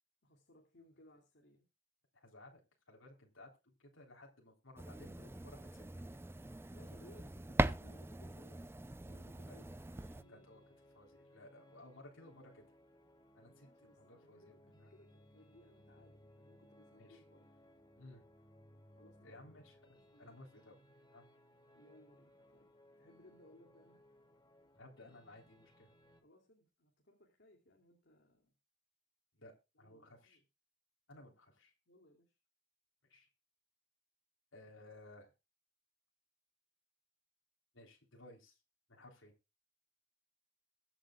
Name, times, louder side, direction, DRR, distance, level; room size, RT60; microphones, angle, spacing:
voice 1, 0.2-1.7 6.7-8.7 9.0-9.7 10.1-10.8 13.5-17.5 18.9-19.4 19.9-20.4 21.7-22.7 23.0-24.0 26.2-28.5 29.7-30.4 31.9-32.4, left 1 dB, 60° left, 2 dB, 2.8 m, -64 dB
voice 2, 2.1-2.6 2.9-5.8 9.5-9.6 10.3-10.6 10.9-12.6 13.3-14.9 17.0-17.2 18.0-18.2 19.2-20.8 21.1-21.2 24.8-25.9 29.3-30.4 31.1-31.7 33.1-33.3 34.5-35.3 37.7-38.6 38.9-39.3, left 1 dB, 75° left, 0 dB, 3.6 m, -58 dB
sound 1, 4.8-10.2, right 2 dB, 10° right, 0.5 m, -40 dB
sound 2, 9.5-26.2, left 1 dB, 20° left, 1.8 m, -64 dB
22.5 x 7.9 x 2.4 m, 0.26 s
head